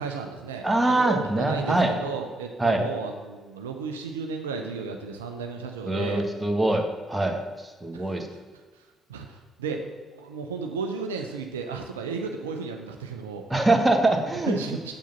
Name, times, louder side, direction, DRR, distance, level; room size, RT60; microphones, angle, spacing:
voice 1, 0.0-6.2 7.9-8.4 8.7-8.8 9.1-9.8 10.1-13.4 14.5-15.0, right 5 dB, 80° right, 4 dB, 0.6 m, -34 dB
voice 2, 0.6-1.9 2.6-2.8 5.9-8.3 13.5-14.6, right 2 dB, 15° right, 4 dB, 1.6 m, -23 dB
7.6 x 7.2 x 5.8 m, 1.4 s
figure-of-eight pair, 45°, 0 cm